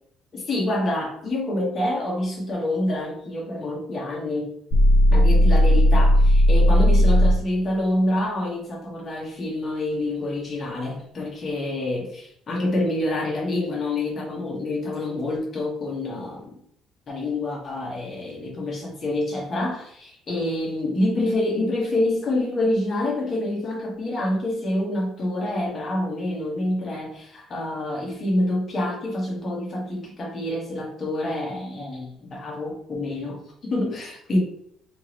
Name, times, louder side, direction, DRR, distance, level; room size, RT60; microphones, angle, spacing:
voice 1, 0.3-4.5 5.1-16.6 17.1-34.4, left 1 dB, 30° left, -2 dB, 1.3 m, -27 dB
sound 1, 4.7-7.5, left 1 dB, 60° left, 0.6 m, -16 dB
3.5 x 3.0 x 3.0 m, 0.70 s
cardioid pair, 145°, 0 cm